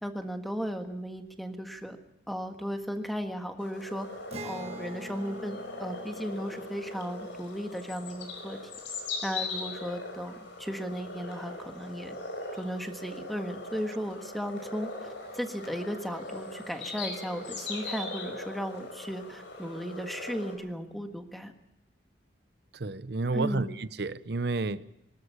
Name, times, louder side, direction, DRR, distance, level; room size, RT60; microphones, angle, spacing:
voice 1, 0.0-2.0 2.3-4.1 4.4-8.6 9.2-12.1 12.5-14.9 15.3-21.5 23.3-23.7, equal, ahead, 1.6 m, -35 dB
sound 1, 3.6-20.5, left 2 dB, 85° left, 5.2 m, -40 dB
Acoustic guitar, 4.3-9.8, right 1 dB, 35° right, 1.6 m, -47 dB
voice 2, 22.7-24.8, right 3 dB, 60° right, 0.7 m, -31 dB
24.0 x 13.0 x 8.4 m
head